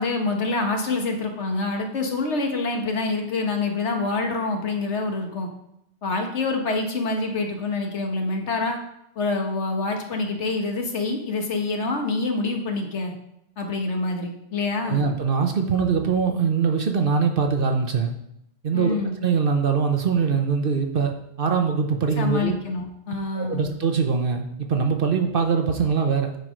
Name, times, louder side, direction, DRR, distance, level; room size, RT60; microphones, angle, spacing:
voice 1, 0.0-5.5 6.0-8.8 9.2-13.1 13.6-15.0 18.7-19.1 22.2-23.7, left 3 dB, 70° left, 3 dB, 1.5 m, -26 dB
voice 2, 14.8-18.1 18.6-22.5 23.3-26.3, right 5 dB, 50° right, 4 dB, 1.0 m, -23 dB
9.5 x 4.7 x 5.0 m, 0.78 s
omnidirectional pair, 1.2 m